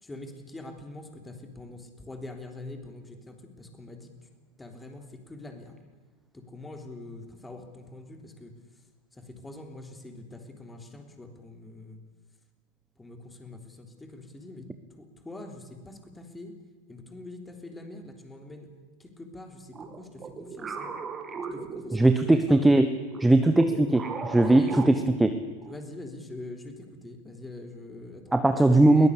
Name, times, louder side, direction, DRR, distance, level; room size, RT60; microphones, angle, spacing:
voice 1, 0.0-4.1 4.6-5.8 6.3-8.5 9.1-12.0 13.0-14.7 15.0-16.5 16.9-18.7 19.0-20.9 21.5-22.7 24.4-25.0 25.7-28.3 28.7-29.1, left 2 dB, 10° left, 5 dB, 3.6 m, -44 dB
sound 1, 19.7-22.5 23.1-25.8, right 5 dB, 25° right, 2.5 m, -38 dB
voice 2, 21.9-22.9 23.2-24.9 25.2-25.3 28.3-29.1, right 2 dB, 5° right, 9 dB, 1.2 m, -19 dB
22.0 x 18.0 x 8.4 m, 1.5 s
figure-of-eight pair, 90°, 0 cm